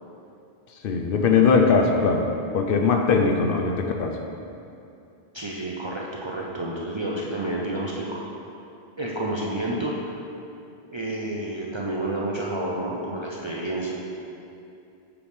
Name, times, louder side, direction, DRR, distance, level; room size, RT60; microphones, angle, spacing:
voice 1, 0.7-2.3 2.5-4.2, left 5 dB, 65° left, 3 dB, 0.7 m, -20 dB
voice 2, 5.3-8.2 9.0-10.1 10.9-13.9, right 1 dB, 40° right, -4 dB, 0.4 m, -29 dB
6.9 x 4.8 x 3.5 m, 2.6 s
omnidirectional pair, 1.0 m